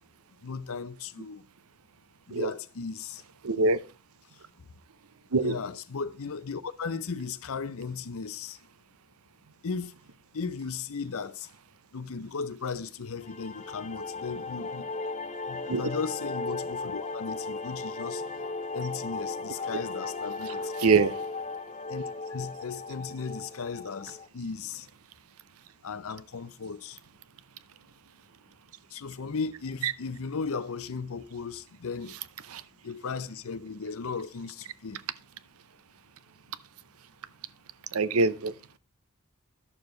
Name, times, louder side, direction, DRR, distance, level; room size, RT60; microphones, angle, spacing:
voice 1, 0.4-1.4 2.3-3.2 3.5-3.8 4.3-4.7 5.4-8.6 9.6-9.9 10.3-11.5 11.9-14.9 15.5-18.2 18.7-20.7 21.9-22.0 22.3-24.9 25.8-27.0 28.9-32.2 32.8-35.0, left 5 dB, 70° left, 0.6 m, -36 dB
voice 2, 3.4-3.8 5.3-5.6 15.7-15.8 20.8-21.2 29.8-29.9 32.5-32.6 37.9-38.5, right 4 dB, 70° right, 0.7 m, -24 dB
sound 1, 13.2-24.3, left 3 dB, 30° left, 0.7 m, -36 dB
11.0 x 6.9 x 3.9 m
head